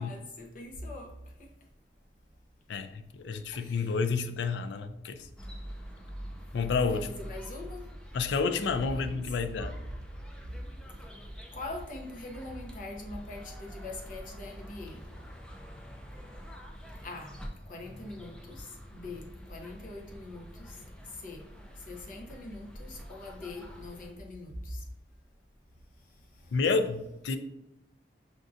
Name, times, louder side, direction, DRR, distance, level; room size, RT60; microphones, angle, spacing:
voice 1, 0.0-1.5 3.5-3.9 6.9-7.9 8.8-9.2 11.5-15.1 17.0-17.4 17.7-21.4 21.8-24.8 26.1-26.6, left 2 dB, 50° left, 0.7 m, -43 dB
voice 2, 2.7-5.3 6.5-7.1 8.1-9.8 26.5-27.4, left 4 dB, 80° left, 0.3 m, -30 dB
sound 1, 5.4-24.1, equal, 5° left, 0.3 m, -45 dB
5.2 x 2.6 x 2.4 m
head